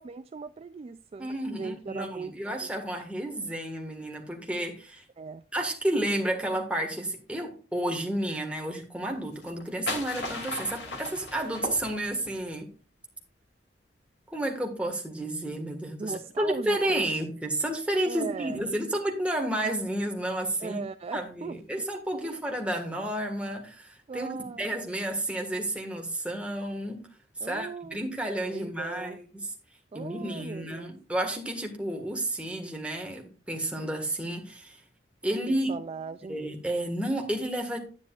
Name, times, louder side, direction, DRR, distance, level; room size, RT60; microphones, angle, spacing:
voice 1, 0.0-2.3 2.6-2.7 5.2-5.4 16.0-17.0 18.0-18.7 20.6-21.8 22.2-22.4 24.1-24.8 27.4-28.0 28.5-29.2 29.9-30.9 35.5-36.4, right 4 dB, 35° right, 0.3 m, -38 dB
voice 2, 1.2-5.0 5.5-12.7 14.3-20.8 21.1-24.3 24.6-27.0 27.4-29.5 29.9-34.8 35.2-35.7 36.3-37.8, right 1 dB, 5° right, 1.6 m, -31 dB
sound 1, 9.3-12.4, left 2 dB, 80° left, 2.5 m, -36 dB
9.7 x 9.7 x 2.4 m
head